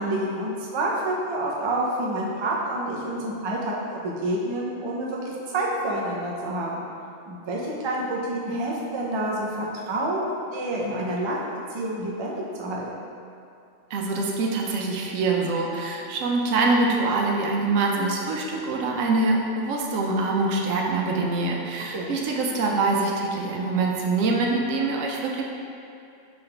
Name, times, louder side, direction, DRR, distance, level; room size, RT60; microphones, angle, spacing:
voice 1, 0.0-6.8 7.3-11.5 11.7-12.9 21.9-22.2, right 1 dB, 45° right, -4 dB, 0.3 m, -28 dB
voice 2, 13.9-25.4, right 3 dB, 80° right, -1 dB, 1.0 m, -24 dB
3.9 x 3.8 x 3.3 m, 2.6 s
omnidirectional pair, 1.4 m